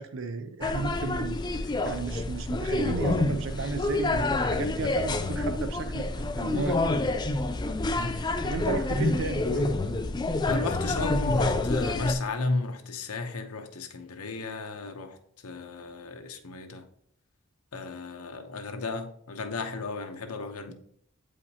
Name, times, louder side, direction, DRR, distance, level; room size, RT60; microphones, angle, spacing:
voice 1, 0.0-6.8 8.1-9.7, right 4 dB, 60° right, 9 dB, 0.5 m, -34 dB
sound 1, 0.6-12.1, left 2 dB, 20° left, 0.3 m, -28 dB
voice 2, 10.4-15.2 15.4-16.9 17.7-20.7, left 3 dB, 85° left, 7 dB, 0.8 m, -33 dB
8.3 x 4.9 x 2.8 m, 0.65 s
head